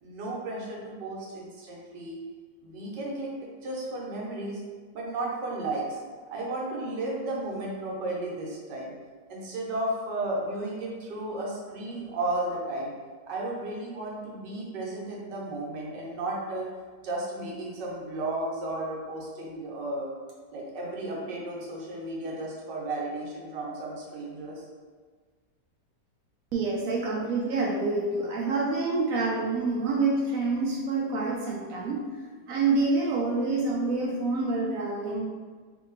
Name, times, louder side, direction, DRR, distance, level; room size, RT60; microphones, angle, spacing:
voice 1, 0.0-2.2 2.6-3.3 3.6-4.6 4.9-6.0 6.3-8.9 9.3-12.9 13.3-16.7 17.0-20.1 20.5-24.6, right 2 dB, 80° right, -3 dB, 1.5 m, -34 dB
voice 2, 26.5-32.0 32.5-35.2, right 3 dB, 60° right, -3 dB, 1.0 m, -27 dB
3.4 x 2.8 x 3.9 m, 1.5 s
omnidirectional pair, 1.8 m